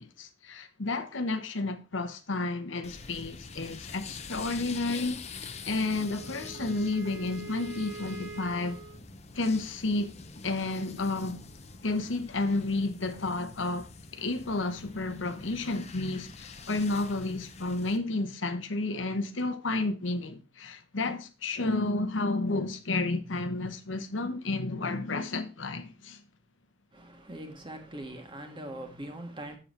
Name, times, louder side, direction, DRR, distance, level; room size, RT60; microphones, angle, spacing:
voice 1, 0.0-8.8 9.3-10.1 10.4-11.4 11.8-26.2, left 2 dB, 80° left, 1.1 m, -31 dB
sound 1, 2.8-18.0, left 4 dB, 35° left, 0.8 m, -45 dB
Wind instrument woodwind instrument, 5.8-9.0, right 4 dB, 85° right, 1.6 m, -44 dB
voice 2, 26.9-29.6, right 1 dB, 25° right, 1.6 m, -42 dB
7.4 x 7.1 x 4.4 m
head